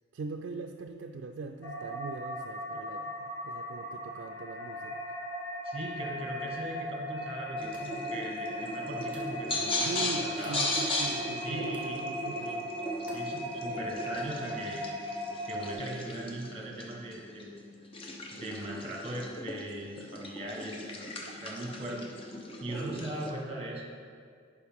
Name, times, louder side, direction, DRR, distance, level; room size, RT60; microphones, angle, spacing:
voice 1, 0.1-5.0 9.8-12.7 21.8-22.0 22.6-23.0 23.3-23.4, right 4 dB, 65° right, 4 dB, 0.3 m, -41 dB
sound 1, 1.6-15.7, left 1 dB, 80° left, 1.2 m, -38 dB
voice 2, 5.6-10.6 11.4-12.0 12.4-12.6 13.1-15.0 15.4-17.5 18.3-21.1 21.4-22.0 22.6-23.8, right 1 dB, 30° right, -1 dB, 1.2 m, -39 dB
sound 2, 7.6-23.3, left 1 dB, 30° left, 0.7 m, -37 dB
sound 3, 7.7-8.1 9.1-9.5 10.4-10.7 11.7-12.0 13.1-13.4, right 1 dB, 10° right, 1.0 m, -53 dB
11.0 x 4.9 x 3.5 m, 2.3 s
head